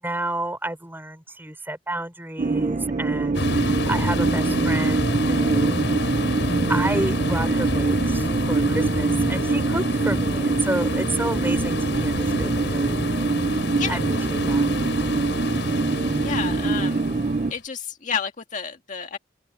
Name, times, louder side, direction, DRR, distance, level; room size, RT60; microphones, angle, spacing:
voice 1, 0.0-5.7 6.7-13.0 13.9-14.7, right 1 dB, 10° right, 5.9 m, -31 dB
sound 1, 2.4-17.5, right 3 dB, 40° right, 0.5 m, -24 dB
sound 2, 3.3-17.6, left 2 dB, 90° left, 4.5 m, -29 dB
voice 2, 13.7-14.1 16.2-17.1 17.5-19.2, left 6 dB, 45° left, 1.7 m, -30 dB
open air
head